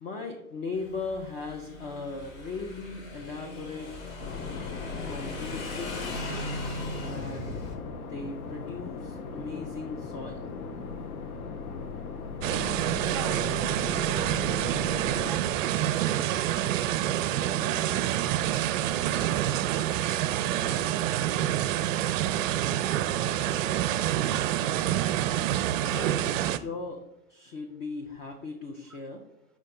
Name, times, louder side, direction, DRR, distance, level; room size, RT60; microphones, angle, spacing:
voice 1, 0.0-3.9 5.1-6.5 7.0-7.6 8.0-10.5 25.9-27.0 27.3-29.2, left 3 dB, 15° left, 3 dB, 0.3 m, -38 dB
Motorcycle / Engine, 0.7-7.7, left 1 dB, 55° left, 2.0 m, -39 dB
sound 1, 4.2-15.3, left 5 dB, 75° left, 0.9 m, -38 dB
sound 2, 12.4-26.6, right 12 dB, 60° right, 0.5 m, -27 dB
voice 2, 13.1-15.6 17.3-18.6 28.9-29.0, right 3 dB, ahead, 4 dB, 0.9 m, -46 dB
6.1 x 4.2 x 3.7 m, 0.81 s
hypercardioid pair, 110°, 44 cm